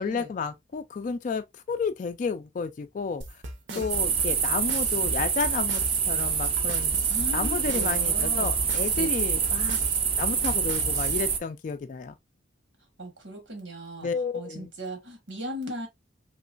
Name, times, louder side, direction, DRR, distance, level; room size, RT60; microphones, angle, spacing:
voice 1, 0.0-3.2 3.8-6.9 7.3-9.8 10.2-12.1 14.0-14.7, left 5 dB, 45° left, 0.3 m, -31 dB
sound 1, 3.2-11.2, right 1 dB, 70° right, 0.8 m, -38 dB
sound 2, 3.9-11.4, right 6 dB, 30° right, 0.4 m, -26 dB
voice 2, 7.1-8.5 9.0-9.1 13.0-14.1 14.3-15.9, equal, 90° right, 1.6 m, -37 dB
3.1 x 3.0 x 2.4 m
head